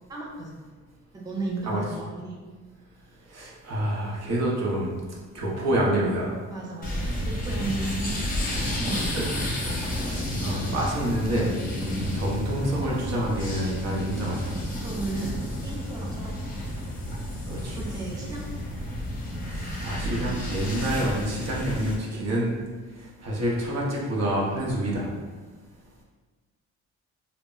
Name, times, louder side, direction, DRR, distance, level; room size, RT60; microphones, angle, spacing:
voice 1, 0.1-0.5 1.1-2.4 6.5-8.2 8.5-9.1 11.8-12.0 14.8-16.3 17.8-18.4, right 2 dB, 15° right, -4 dB, 0.5 m, -34 dB
voice 2, 3.3-4.9 5.3-6.4 8.9-9.5 10.0-11.5 11.8-14.6 17.5-17.8 19.5-22.5 23.0-25.1, right 1 dB, 60° right, -3 dB, 0.8 m, -28 dB
sound 1, 6.8-22.0, left 1 dB, 30° left, 0.7 m, -31 dB
2.1 x 2.0 x 3.7 m, 1.4 s
cardioid pair, 90°, 30 cm